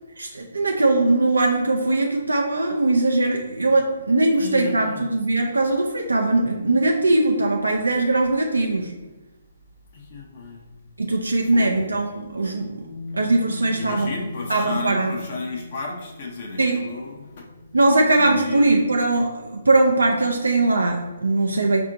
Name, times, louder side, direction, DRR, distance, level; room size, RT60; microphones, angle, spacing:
voice 1, 0.2-8.9 11.0-12.7 13.1-14.1 14.5-15.1 16.6-16.9 17.7-21.8, right 2 dB, 85° right, 2 dB, 0.4 m, -20 dB
voice 2, 4.4-5.3 9.9-10.7 11.4-11.9 13.7-17.5 18.2-18.7, left 3 dB, 50° left, -1 dB, 0.6 m, -33 dB
sound 1, 12.8-19.6, left 3 dB, 30° right, 0.6 m, -40 dB
4.2 x 2.6 x 2.5 m, 1.1 s
figure-of-eight pair, 140°, 0 cm